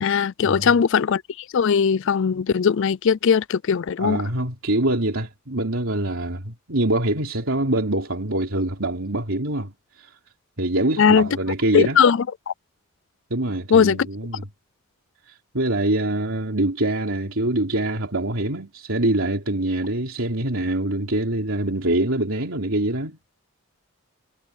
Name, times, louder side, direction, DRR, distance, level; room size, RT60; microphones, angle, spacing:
voice 1, 0.0-1.2 1.5-4.2 11.0-11.3 11.7-12.5 13.7-14.1, left 6 dB, 60° left, 0.4 m, -19 dB
voice 2, 4.0-9.7 10.0-10.1 10.6-12.0 13.3-14.4 15.3-23.2, right 1 dB, 70° right, 3.5 m, -24 dB
head